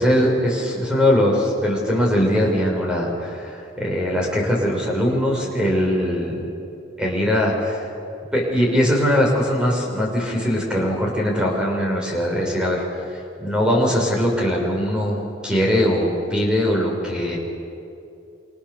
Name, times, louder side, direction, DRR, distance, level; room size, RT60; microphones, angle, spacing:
voice 1, 0.0-6.5 7.0-7.8 8.3-13.0 13.4-17.4, equal, 5° right, -2 dB, 6.0 m, -21 dB
29.0 x 27.0 x 7.0 m, 2.7 s
head